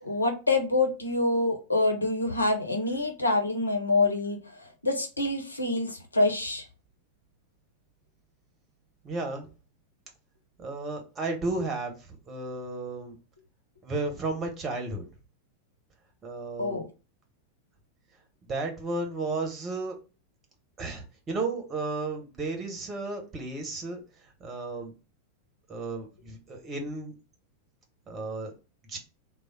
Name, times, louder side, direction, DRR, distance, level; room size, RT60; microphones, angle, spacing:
voice 1, 0.0-4.4 4.8-6.6 16.6-16.9, left 2 dB, 80° left, 4 dB, 0.8 m, -26 dB
voice 2, 9.0-9.5 10.6-13.2 13.8-15.1 16.2-16.8 18.5-20.0 20.8-24.0 24.4-24.9 25.7-27.1 28.1-28.5 28.9-29.0, right 3 dB, 20° right, 3 dB, 1.0 m, -33 dB
3.3 x 2.0 x 4.0 m, 0.32 s
figure-of-eight pair, 90°, 0 cm